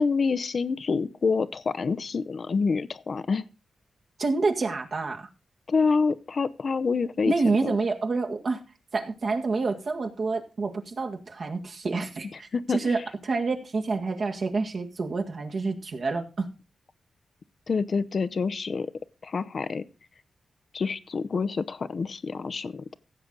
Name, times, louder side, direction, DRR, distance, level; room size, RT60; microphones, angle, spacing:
voice 1, 0.0-3.4 5.7-7.3 7.6-7.8 12.3-12.9 17.7-18.9 19.2-19.8 20.7-23.0, left 4 dB, 55° left, 14 dB, 0.7 m, -27 dB
voice 2, 4.2-5.3 7.3-8.6 8.9-13.0 13.2-16.5, right 3 dB, 55° right, 3 dB, 1.8 m, -28 dB
15.5 x 7.5 x 3.8 m, 0.33 s
cardioid pair, 80°, 0 cm